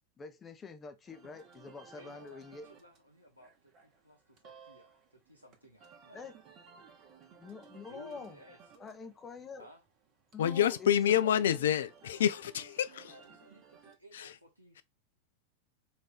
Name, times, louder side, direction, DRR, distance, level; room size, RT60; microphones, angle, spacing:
voice 1, 0.2-2.7 6.1-6.3 7.4-8.4 8.8-9.7 10.3-11.7, left 5 dB, 20° left, 0.7 m, -46 dB
sound 1, 1.1-13.9, right 6 dB, 35° right, 1.0 m, -58 dB
voice 2, 2.0-6.3 7.9-8.6 9.6-9.8 12.9-14.8, left 1 dB, 90° right, 0.8 m, -57 dB
voice 3, 10.4-13.1 14.1-14.3, left 10 dB, 60° left, 0.4 m, -28 dB
4.4 x 2.6 x 3.5 m
figure-of-eight pair, 90°, 0 cm